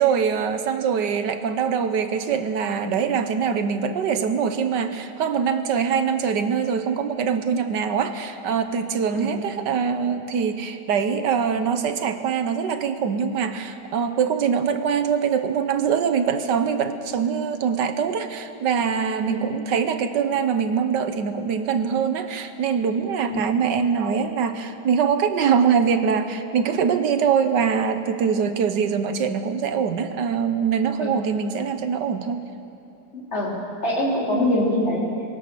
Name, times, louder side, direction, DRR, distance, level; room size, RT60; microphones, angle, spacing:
voice 1, 0.0-32.4, right 6 dB, 80° right, 9 dB, 1.6 m, -23 dB
voice 2, 33.1-33.6 33.8-35.0, left 1 dB, 35° left, -4 dB, 3.8 m, -24 dB
22.0 x 17.5 x 6.8 m, 2.7 s
omnidirectional pair, 1.9 m